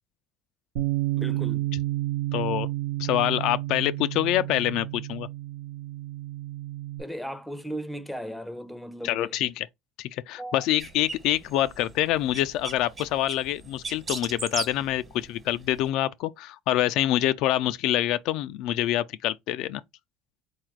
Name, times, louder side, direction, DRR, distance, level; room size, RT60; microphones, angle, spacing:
Bass guitar, 0.8-7.0, right 16 dB, 85° right, 1.0 m, -31 dB
voice 1, 1.2-1.7 7.0-9.4 10.4-10.7, equal, ahead, 0.6 m, -36 dB
voice 2, 2.3-2.7 3.0-5.3 9.0-9.7 10.0-19.8, left 14 dB, 70° left, 0.3 m, -26 dB
sound 1, 10.8-15.9, right 3 dB, 30° right, 1.3 m, -39 dB
4.0 x 2.4 x 4.5 m
supercardioid pair, 110°, 0 cm